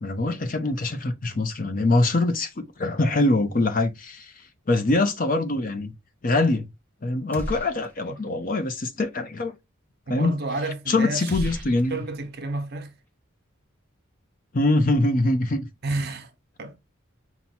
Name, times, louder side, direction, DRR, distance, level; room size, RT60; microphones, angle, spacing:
voice 1, 0.0-4.3 4.7-5.9 6.2-6.7 7.0-9.5 10.1-10.4 10.9-12.0 14.5-15.7, left 2 dB, 40° left, 0.6 m, -23 dB
sound 1, 7.3-8.2 8.5-8.6 11.3-12.6, equal, 10° left, 0.9 m, -36 dB
voice 2, 10.1-11.5 11.9-12.9 15.8-16.3 16.6-16.8, right 2 dB, 50° right, 0.9 m, -30 dB
5.7 x 2.2 x 4.3 m
head